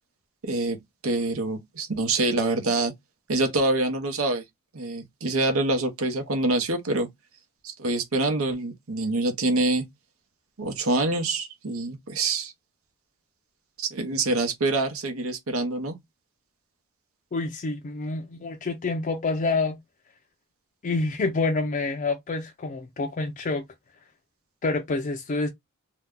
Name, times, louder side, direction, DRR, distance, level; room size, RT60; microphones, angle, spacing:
voice 1, 0.4-2.9 3.3-4.4 4.7-7.1 7.6-9.9 10.6-12.5 13.8-16.0, right 2 dB, 80° right, 0.9 m, -26 dB
voice 2, 17.3-19.8 20.8-23.6 24.6-25.5, left 3 dB, 40° left, 0.4 m, -27 dB
2.8 x 2.2 x 3.5 m
head